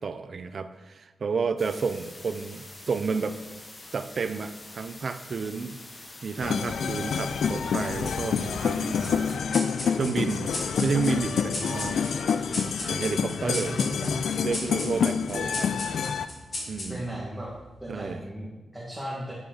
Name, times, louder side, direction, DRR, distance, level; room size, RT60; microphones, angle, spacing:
voice 1, 0.0-3.4 3.9-5.8 6.2-9.4 9.9-10.5 10.8-12.0 12.9-13.8 14.4-15.7 16.7-17.0 17.9-18.2, right 5 dB, 60° right, 11 dB, 0.5 m, -31 dB
sound 1, 1.6-9.4, left 2 dB, 30° left, 1.0 m, -46 dB
sound 2, 6.4-16.3, left 6 dB, 80° left, 0.3 m, -28 dB
sound 3, 9.0-17.9, left 1 dB, 55° left, 2.1 m, -38 dB
voice 2, 13.4-14.2 15.3-15.5 16.9-17.5 17.8-19.3, equal, 5° right, -7 dB, 1.8 m, -36 dB
9.1 x 4.8 x 3.9 m, 1.2 s
cardioid pair, 70°, 0 cm